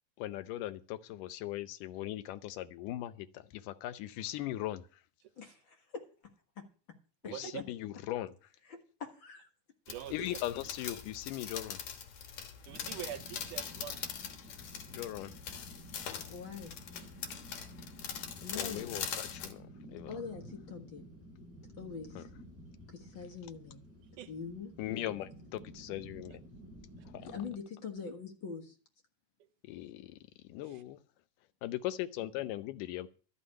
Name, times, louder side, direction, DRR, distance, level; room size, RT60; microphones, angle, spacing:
voice 1, 0.2-5.0 7.2-8.3 10.1-11.8 14.9-15.3 18.5-20.2 22.2-22.3 24.8-26.4 29.6-31.0 31.6-33.1, left 14 dB, 85° left, 2.3 m, -39 dB
voice 2, 5.4-6.0 8.7-9.5 16.3-16.7 18.4-19.0 20.1-21.1 21.8-22.3 22.9-23.8 24.3-24.7 27.3-28.8, left 5 dB, 50° left, 1.7 m, -43 dB
voice 3, 7.2-7.6 9.9-10.4 12.1-12.3 12.7-14.0 24.2-24.3 29.4-29.5 30.6-30.8, right 12 dB, 80° right, 2.4 m, -44 dB
sound 1, 9.9-19.5, left 8 dB, 65° left, 2.5 m, -42 dB
sound 2, 12.7-27.6, right 1 dB, 5° right, 3.8 m, -53 dB
13.0 x 6.0 x 8.7 m
omnidirectional pair, 3.7 m